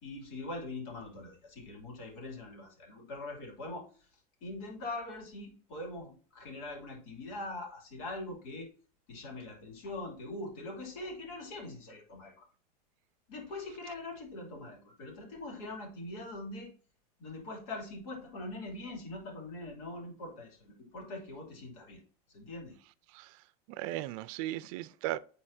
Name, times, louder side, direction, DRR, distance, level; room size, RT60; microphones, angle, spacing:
voice 1, 0.0-3.9 4.4-8.7 9.1-12.4 13.3-16.7 17.2-22.0 22.3-22.7, left 2 dB, 65° left, 2.9 m, -42 dB
voice 2, 23.7-25.2, right 15 dB, 65° right, 0.5 m, -37 dB
9.9 x 4.0 x 2.7 m
supercardioid pair, 150°, 19 cm